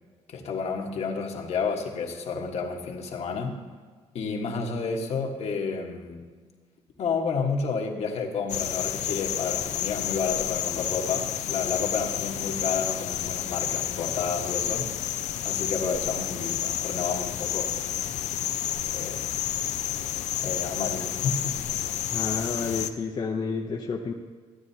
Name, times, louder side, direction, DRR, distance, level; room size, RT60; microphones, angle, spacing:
voice 1, 0.3-3.6 4.1-6.2 7.0-14.9 15.4-17.7 18.9-19.3 20.4-21.6 22.0-22.1, left 5 dB, 65° left, 1 dB, 1.3 m, -30 dB
sound 1, 8.5-22.9, left 11 dB, 80° left, 0.5 m, -30 dB
voice 2, 22.1-24.1, left 4 dB, 40° left, 1 dB, 0.7 m, -30 dB
14.5 x 9.5 x 2.8 m, 1.5 s
cardioid pair, 80°, 12 cm